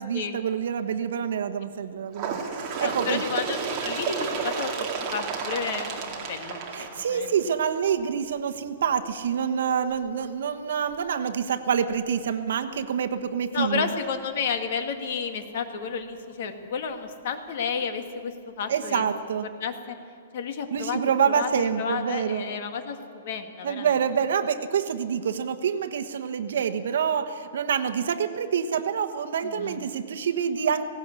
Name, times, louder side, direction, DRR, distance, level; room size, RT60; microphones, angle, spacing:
voice 1, 0.0-3.2 6.7-13.9 18.7-19.5 20.7-22.4 23.6-30.8, right 7 dB, 65° right, 8 dB, 1.3 m, -27 dB
Bird, 2.1-7.6 8.5-8.6 8.9-9.0 9.9-10.0 10.9-11.0 11.9-12.0, right 5 dB, 20° right, 2.2 m, -31 dB
voice 2, 2.8-7.3 13.5-19.1 19.6-20.0 20.3-21.0 21.3-23.9 29.4-29.8, left 6 dB, 45° left, 7 dB, 1.9 m, -32 dB
18.5 x 17.5 x 8.4 m, 2.4 s
hypercardioid pair, 175°, 0 cm